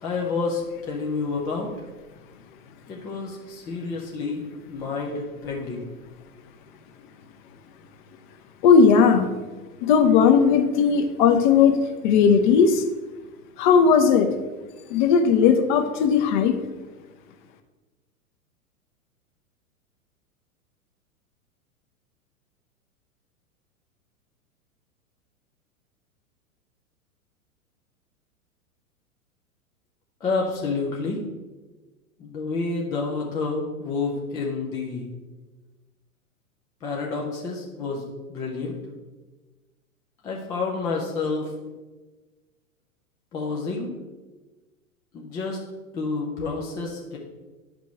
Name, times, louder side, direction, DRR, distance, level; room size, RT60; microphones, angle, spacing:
voice 1, 0.0-1.7 2.9-4.4 4.7-5.9 30.2-31.2 32.2-35.1 36.8-38.8 40.2-41.5 43.3-44.0 45.1-45.6 45.9-47.2, left 4 dB, 10° left, -2 dB, 0.4 m, -29 dB
voice 2, 8.6-9.3 9.8-11.8 12.0-12.8 13.6-14.3 14.9-16.6, left 6 dB, 35° left, 7 dB, 0.8 m, -17 dB
10.0 x 5.3 x 4.5 m, 1.2 s
figure-of-eight pair, 100°, 44 cm